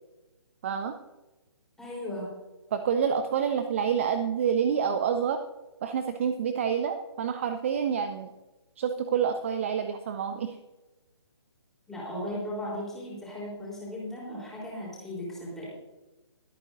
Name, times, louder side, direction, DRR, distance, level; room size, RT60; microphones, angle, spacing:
voice 1, 0.6-1.0 2.7-5.4 5.8-8.3 8.8-10.6, right 7 dB, 30° right, 9 dB, 0.6 m, -28 dB
voice 2, 1.8-2.3 11.9-15.7, left 1 dB, 5° left, -6 dB, 3.7 m, -36 dB
22.0 x 8.9 x 2.6 m, 1.1 s
figure-of-eight pair, 140°, 14 cm